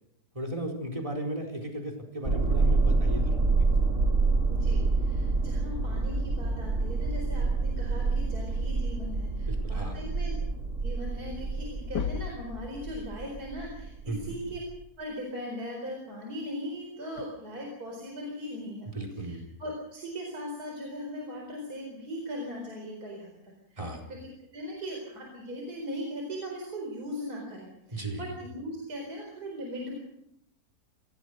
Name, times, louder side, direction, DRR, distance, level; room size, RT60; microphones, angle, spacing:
voice 1, 0.3-3.7 9.5-10.0 14.1-14.4 18.8-19.4 23.8-24.0 27.9-28.3, right 1 dB, 20° right, 4 dB, 4.5 m, -36 dB
sound 1, 2.2-14.7, right 3 dB, 50° right, 3.1 m, -27 dB
voice 2, 4.5-10.3 10.8-14.6 15.0-18.9 19.2-23.9 24.2-30.0, equal, 65° right, 0 dB, 4.9 m, -39 dB
sound 2, 10.9-11.0 11.3-11.6 11.8-12.5 14.2-14.3 16.1-16.3 17.2-17.3, left 6 dB, 85° left, 1.9 m, -34 dB
26.5 x 17.5 x 6.5 m, 0.81 s
omnidirectional pair, 1.8 m